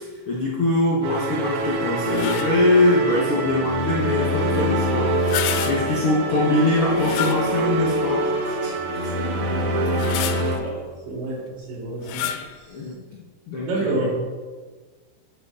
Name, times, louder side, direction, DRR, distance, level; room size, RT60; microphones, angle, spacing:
voice 1, 0.0-5.2 5.7-9.2 9.8-10.1 12.7-14.1, left 2 dB, 70° left, -4 dB, 1.3 m, -23 dB
sound 1, 1.0-10.6, right 1 dB, 65° right, 1.8 m, -25 dB
sound 2, 2.0-2.7 5.1-6.2 6.9-7.9 8.4-8.5 9.7-10.7 12.0-12.6, left 10 dB, 90° left, 2.1 m, -30 dB
voice 2, 10.6-12.3 13.6-14.2, right 2 dB, 80° right, -4 dB, 5.1 m, -28 dB
11.0 x 4.6 x 7.0 m, 1.4 s
omnidirectional pair, 5.1 m